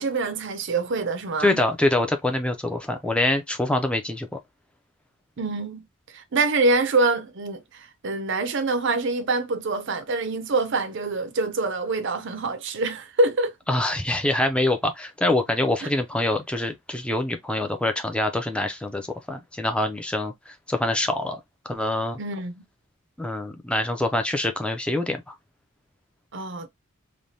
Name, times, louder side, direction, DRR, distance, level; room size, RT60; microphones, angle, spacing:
voice 1, 0.0-1.6 5.4-13.5 15.8-15.9 22.2-22.6 26.3-26.7, right 3 dB, 55° right, 0.6 m, -25 dB
voice 2, 1.4-4.3 13.7-21.4 21.7-22.2 23.2-25.3, left 1 dB, 5° left, 0.4 m, -25 dB
3.3 x 2.2 x 2.6 m
head